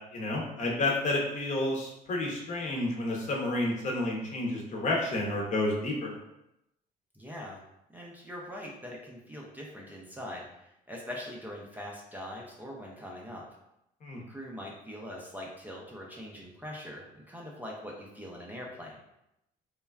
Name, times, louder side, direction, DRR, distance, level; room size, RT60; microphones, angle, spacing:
voice 1, 0.1-6.2 14.0-14.2, left 2 dB, 45° left, -1 dB, 0.7 m, -30 dB
voice 2, 7.1-7.6 7.9-13.4 14.3-19.0, left 1 dB, 10° right, -3 dB, 0.5 m, -42 dB
3.1 x 2.2 x 2.3 m, 0.83 s
cardioid pair, 110°, 17 cm